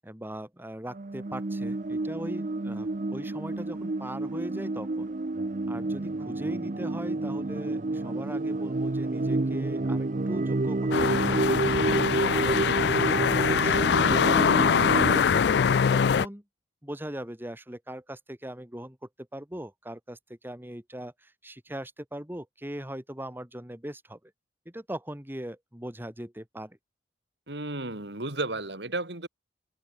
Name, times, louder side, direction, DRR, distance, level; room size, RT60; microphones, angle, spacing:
voice 1, 0.0-5.1 5.7-11.3 11.8-12.6 12.9-16.4 16.8-24.3 24.7-26.8, right 1 dB, 10° right, 2.6 m, -40 dB
sound 1, 0.9-15.2, right 2 dB, 45° right, 0.7 m, -29 dB
sound 2, 10.9-16.3, left 7 dB, 65° left, 0.4 m, -23 dB
voice 2, 27.5-29.3, right 2 dB, 70° right, 3.5 m, -33 dB
open air
head